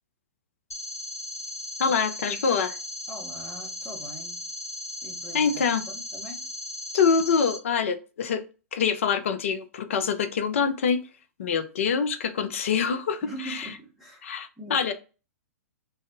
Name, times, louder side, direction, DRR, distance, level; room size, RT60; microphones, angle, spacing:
sound 1, 0.7-7.6, left 1 dB, 80° left, 1.0 m, -37 dB
voice 1, 1.8-2.8 5.3-5.8 6.9-8.4 8.7-11.0 11.4-13.2 13.5-13.7 14.2-14.9, left 6 dB, 60° left, 8 dB, 0.4 m, -25 dB
voice 2, 3.1-4.5 5.0-6.5 13.2-14.2 14.6-14.9, right 1 dB, 5° right, -7 dB, 1.1 m, -42 dB
2.5 x 2.3 x 2.5 m, 0.33 s
figure-of-eight pair, 110°, 8 cm